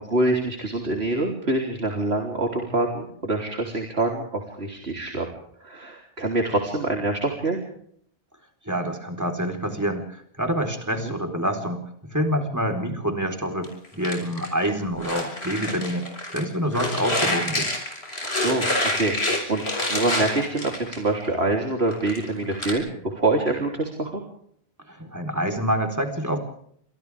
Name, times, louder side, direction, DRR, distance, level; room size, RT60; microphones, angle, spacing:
voice 1, 0.0-5.3 5.6-7.6 11.0-11.2 18.2-24.2, right 2 dB, 75° right, 1 dB, 3.8 m, -25 dB
voice 2, 8.7-11.8 12.1-16.1 16.3-17.7 24.9-26.4, equal, 15° right, 3 dB, 4.2 m, -27 dB
sound 1, 13.6-16.4 16.7-21.3 21.7-22.7, left 1 dB, 75° left, 6.7 m, -27 dB
29.5 x 27.0 x 3.6 m, 0.66 s
omnidirectional pair, 1.1 m